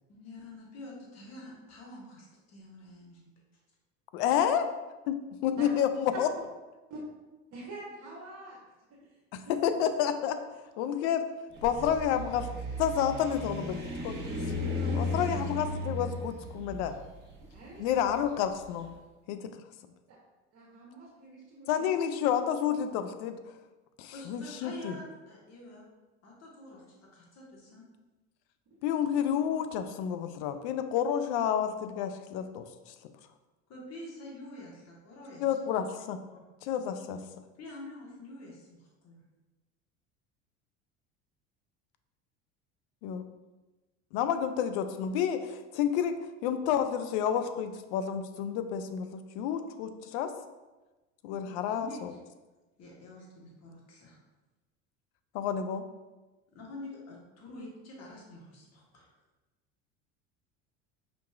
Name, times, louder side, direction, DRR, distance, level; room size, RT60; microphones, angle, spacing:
voice 1, 0.1-3.3 14.8-15.5 24.1-25.9 26.2-26.8 27.1-27.8 33.7-35.4 35.8-35.9 36.3-36.4 37.6-39.2 51.4-52.0 52.8-54.2 56.5-59.1, left 1 dB, 45° left, -2 dB, 1.4 m, -47 dB
voice 2, 4.1-4.6 5.1-5.2 5.4-6.3 9.3-10.4 10.8-11.3 11.6-12.5 12.8-14.2 14.9-16.9 17.8-18.9 19.3-19.5 21.7-23.4 24.0-25.0 28.8-32.9 35.4-36.2 36.6-37.2 43.0-43.2 44.1-50.3 51.2-52.1 55.3-55.8, left 9 dB, 70° left, 9 dB, 0.5 m, -30 dB
voice 3, 7.5-8.6 8.9-9.2 9.4-9.5 14.8-15.1 17.5-17.8 20.5-21.9 28.7-28.8, right 3 dB, 45° right, -3 dB, 1.0 m, -46 dB
sound 1, 11.5-18.7, left 1 dB, 30° right, 1.2 m, -35 dB
5.1 x 2.9 x 2.4 m, 1.2 s
hypercardioid pair, 85°, 37 cm